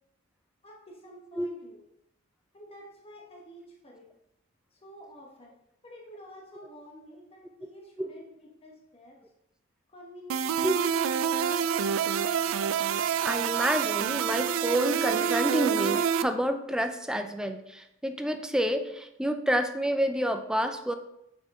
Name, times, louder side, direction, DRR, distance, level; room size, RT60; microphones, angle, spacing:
voice 1, 0.6-1.8 2.5-4.1 4.7-5.5 5.8-8.3 8.6-9.2 9.9-10.9, equal, 30° left, -1 dB, 1.3 m, -50 dB
sound 1, 10.3-16.2, right 8 dB, 85° right, 0.4 m, -27 dB
voice 2, 13.2-20.9, equal, 5° right, 7 dB, 0.5 m, -29 dB
6.4 x 6.0 x 4.2 m, 0.83 s
head